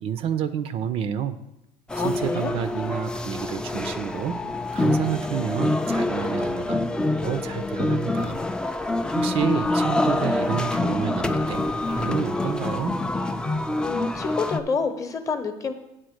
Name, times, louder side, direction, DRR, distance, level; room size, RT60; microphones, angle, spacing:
voice 1, 0.0-1.4 2.0-4.4 4.7-6.8 7.2-8.4 9.1-11.6 11.9-12.9, right 8 dB, 50° right, 12 dB, 0.5 m, -29 dB
voice 2, 1.9-2.5 13.8-15.7, left 5 dB, 25° left, 8 dB, 0.8 m, -28 dB
sound 1, 1.9-14.6, left 2 dB, 5° left, 0.3 m, -26 dB
9.3 x 3.8 x 6.4 m, 0.89 s
cardioid pair, 120°, 12 cm